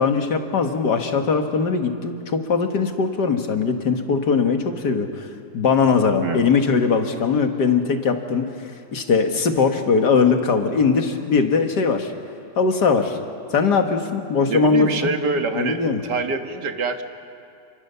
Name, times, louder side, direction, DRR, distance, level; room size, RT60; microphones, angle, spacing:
voice 1, 0.0-5.3 5.5-8.5 8.9-12.1 12.6-13.2 13.5-15.2 15.5-16.0, left 5 dB, 80° left, 5 dB, 2.3 m, -20 dB
voice 2, 14.5-17.0, right 4 dB, 90° right, 6 dB, 2.2 m, -25 dB
29.5 x 23.5 x 6.9 m, 2.4 s
omnidirectional pair, 1.8 m